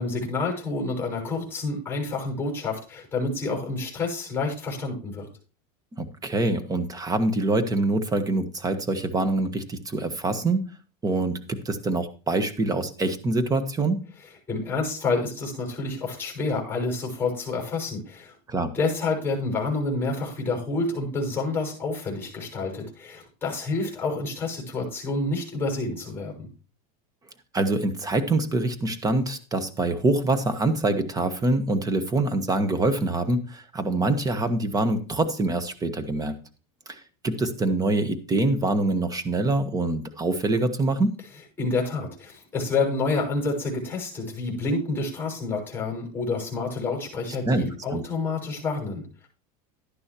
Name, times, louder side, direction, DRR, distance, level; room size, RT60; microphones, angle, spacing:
voice 1, 0.0-5.3 14.5-18.3 18.7-26.5 41.6-49.3, left 3 dB, 10° left, 0 dB, 6.2 m, -28 dB
voice 2, 6.0-10.7 11.0-14.0 18.5-18.7 27.5-36.3 36.9-41.2 47.4-48.0, right 2 dB, 20° right, 9 dB, 1.4 m, -25 dB
11.5 x 11.0 x 3.0 m, 0.35 s
supercardioid pair, 120°, 20 cm